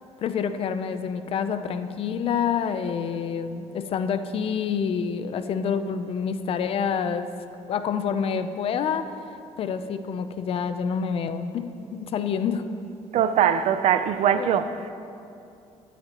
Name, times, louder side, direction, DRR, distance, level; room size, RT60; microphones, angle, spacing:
voice 1, 0.2-7.3 7.7-9.0 9.6-12.6 14.4-14.6, left 7 dB, 50° left, 0.5 m, -27 dB
voice 2, 13.1-14.8, right 9 dB, 60° right, 0.5 m, -21 dB
19.0 x 8.3 x 3.0 m
cardioid pair, 145°, 12 cm